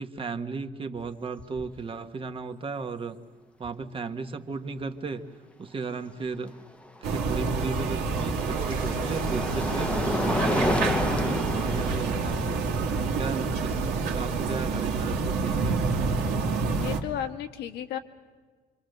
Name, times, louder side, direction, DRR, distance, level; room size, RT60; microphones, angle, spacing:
voice 1, 0.0-3.2 3.6-6.5 7.0-12.7 13.1-16.0, right 4 dB, 30° right, 7 dB, 1.4 m, -35 dB
sound 1, 1.0-1.1 1.4-1.8 3.6-3.7 6.7-14.8, left 1 dB, 5° left, 0.9 m, -32 dB
sound 2, 7.0-17.0, right 4 dB, 80° right, 2.3 m, -28 dB
sound 3, 8.3-14.1, right 6 dB, 55° right, 2.2 m, -44 dB
voice 2, 16.8-18.0, left 10 dB, 85° left, 7 dB, 1.7 m, -33 dB
26.5 x 25.5 x 6.7 m, 1.5 s
cardioid pair, 110°, 17 cm